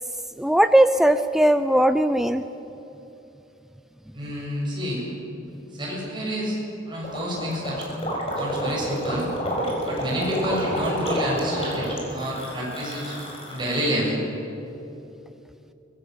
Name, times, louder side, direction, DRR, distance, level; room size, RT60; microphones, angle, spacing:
voice 1, 0.4-2.4, right 1 dB, ahead, 10 dB, 0.4 m, -18 dB
voice 2, 4.1-5.0 5.7-6.6 6.8-7.9 8.4-9.3 9.8-13.2 13.5-14.2, equal, 25° right, -4 dB, 7.2 m, -28 dB
Gurgling, 7.0-13.9, equal, 30° left, 5.3 m, -29 dB
23.5 x 19.5 x 8.1 m, 2.9 s
head